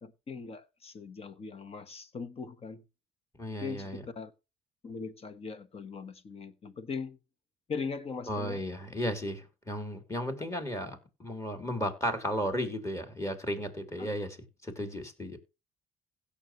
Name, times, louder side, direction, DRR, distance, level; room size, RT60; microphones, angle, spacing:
voice 1, 0.0-2.8 3.5-4.3 4.8-7.2 7.7-8.6 14.0-14.1, left 5 dB, 35° left, 1.4 m, -40 dB
voice 2, 3.4-4.0 8.3-14.4 14.6-15.4, equal, 15° left, 3.2 m, -34 dB
16.5 x 7.0 x 3.2 m
cardioid pair, 110°, 17 cm